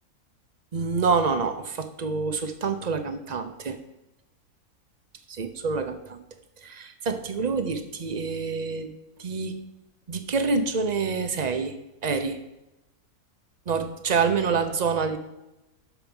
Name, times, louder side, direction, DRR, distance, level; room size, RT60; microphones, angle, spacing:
voice 1, 0.7-3.8 5.3-6.2 6.6-8.9 9.2-9.6 10.1-11.7 12.0-12.4 13.7-15.2, right 5 dB, 40° right, 8 dB, 0.7 m, -27 dB
12.0 x 4.5 x 5.4 m, 0.94 s
omnidirectional pair, 1.6 m